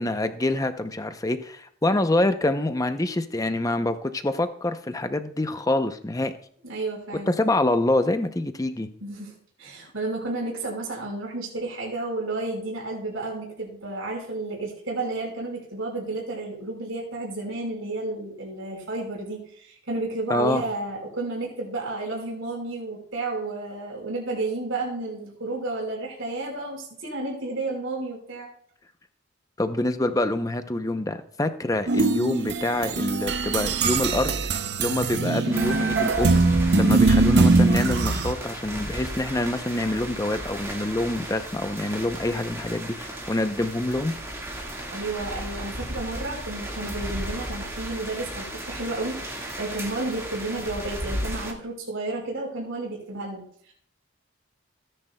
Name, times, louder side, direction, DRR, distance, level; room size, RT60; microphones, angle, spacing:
voice 1, 0.0-6.3 7.3-8.9 20.3-20.6 29.6-36.4 36.7-44.1, left 1 dB, 15° left, 9 dB, 0.6 m, -26 dB
voice 2, 6.6-7.3 9.0-28.5 44.9-53.7, right 2 dB, 80° right, -2 dB, 4.8 m, -32 dB
sound 1, 31.9-38.3, right 3 dB, 55° right, 0.6 m, -22 dB
sound 2, 35.5-51.5, right 1 dB, 15° right, 1.7 m, -34 dB
17.5 x 10.0 x 2.3 m, 0.62 s
head